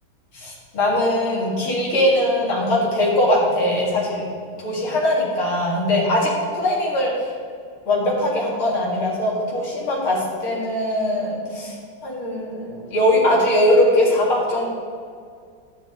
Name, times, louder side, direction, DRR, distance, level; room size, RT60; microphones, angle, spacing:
voice 1, 0.3-4.3 4.6-7.3 7.9-11.8 12.0-14.7, left 1 dB, 75° left, -5 dB, 3.2 m, -21 dB
12.0 x 9.2 x 3.8 m, 2.1 s
omnidirectional pair, 2.4 m